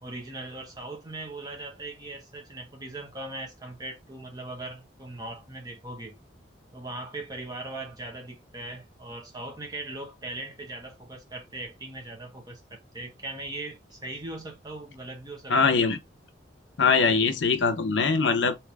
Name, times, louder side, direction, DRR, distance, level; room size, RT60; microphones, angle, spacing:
voice 1, 0.0-6.2 6.7-15.7, right 2 dB, 20° right, 1.2 m, -39 dB
voice 2, 15.5-16.0 16.8-18.6, left 4 dB, 70° left, 0.7 m, -22 dB
3.5 x 2.9 x 3.4 m
head